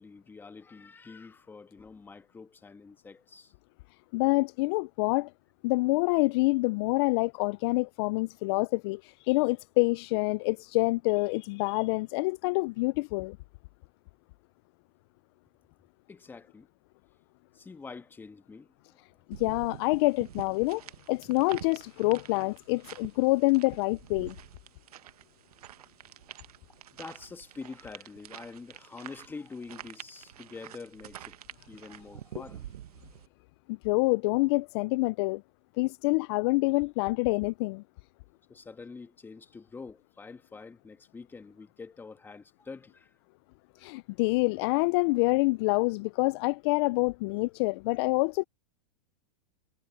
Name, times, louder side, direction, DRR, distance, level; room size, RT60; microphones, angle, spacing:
voice 1, 0.0-3.5 16.1-16.7 17.5-18.7 27.0-31.4 31.7-32.7 38.5-43.1 43.8-43.9, left 4 dB, 10° left, 1.5 m, -46 dB
voice 2, 4.1-5.3 5.6-13.4 19.3-20.8 21.1-24.4 33.7-35.4 35.8-37.8 43.8-48.4, left 25 dB, 45° left, 0.4 m, -27 dB
sound 1, 19.3-33.3, right 12 dB, 80° right, 1.3 m, -47 dB
hypercardioid pair, 135°, 19 cm